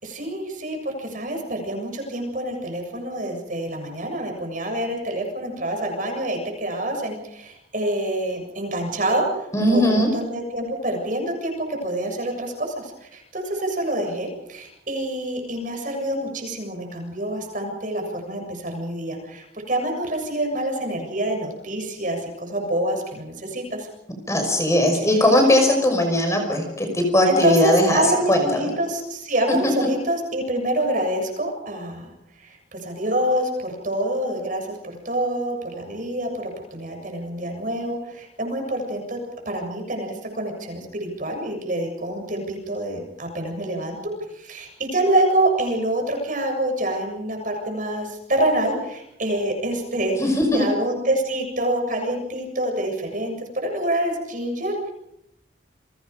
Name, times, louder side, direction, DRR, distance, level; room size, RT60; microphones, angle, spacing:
voice 1, 0.0-23.9 25.1-25.2 27.3-32.1 32.4-39.2 39.5-50.2 50.5-54.9, right 1 dB, 45° right, 3 dB, 7.3 m, -26 dB
voice 2, 9.5-10.1 24.3-28.0 28.3-28.4 29.6-29.7 50.2-50.7, left 1 dB, 15° left, 3 dB, 5.8 m, -19 dB
29.5 x 24.0 x 5.3 m, 0.82 s
head